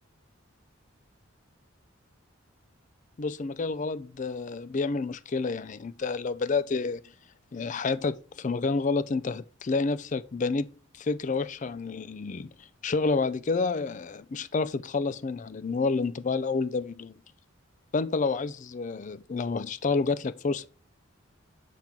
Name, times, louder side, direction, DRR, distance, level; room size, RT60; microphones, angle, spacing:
voice 1, 3.2-7.0 7.5-10.7 10.9-12.5 12.8-17.1 17.9-20.7, left 4 dB, 35° left, 0.4 m, -29 dB
7.4 x 5.8 x 3.7 m
head